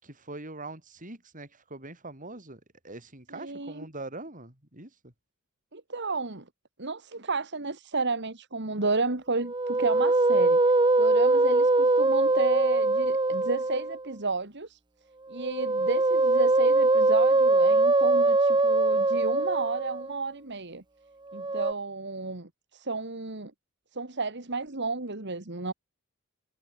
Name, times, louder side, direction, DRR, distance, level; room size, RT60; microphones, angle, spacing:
voice 1, 0.0-5.1, right 2 dB, 40° right, 6.1 m, -43 dB
voice 2, 3.3-3.9 5.7-6.5 6.8-14.8 15.3-20.8 21.3-23.5 23.9-25.7, right 3 dB, 55° right, 2.5 m, -32 dB
Musical instrument, 9.4-14.0 15.3-20.2 21.3-21.7, right 2 dB, 20° right, 0.9 m, -22 dB
head